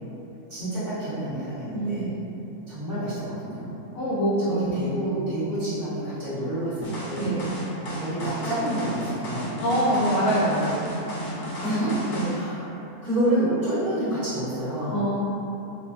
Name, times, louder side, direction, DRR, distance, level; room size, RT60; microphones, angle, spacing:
voice 1, 0.5-2.1 2.7-3.7 4.5-7.3 8.0-9.6 11.4-11.9 12.3-12.6 13.0-15.0, right 1 dB, 40° right, -14 dB, 1.1 m, -28 dB
voice 2, 1.7-2.1 3.9-4.8 7.2-7.4 9.6-10.8 12.1-12.3 14.9-15.2, right 1 dB, 65° left, -9 dB, 1.0 m, -24 dB
sound 1, 6.8-12.4, equal, 85° left, 1.1 m, -33 dB
3.0 x 2.2 x 2.4 m, 2.9 s
omnidirectional pair, 1.6 m